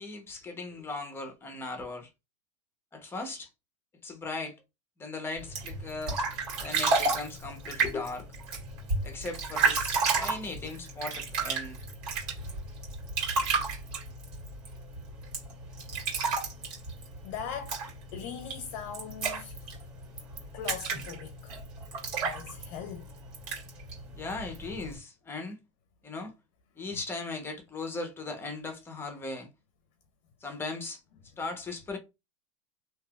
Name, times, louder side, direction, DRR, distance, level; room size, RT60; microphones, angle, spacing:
voice 1, 0.0-2.1 2.9-3.5 4.0-4.6 5.0-6.2 6.6-8.3 9.0-11.8 24.1-25.6 26.0-26.3 26.8-29.5 30.4-31.0 31.4-32.0, left 3 dB, 15° left, 0.9 m, -38 dB
sound 1, 5.4-25.0, right 4 dB, 55° right, 2.0 m, -32 dB
voice 2, 17.2-17.8 18.1-19.5 20.5-21.5 22.2-23.1, left 7 dB, 50° left, 0.7 m, -40 dB
3.2 x 2.9 x 2.3 m
supercardioid pair, 135°, 17 cm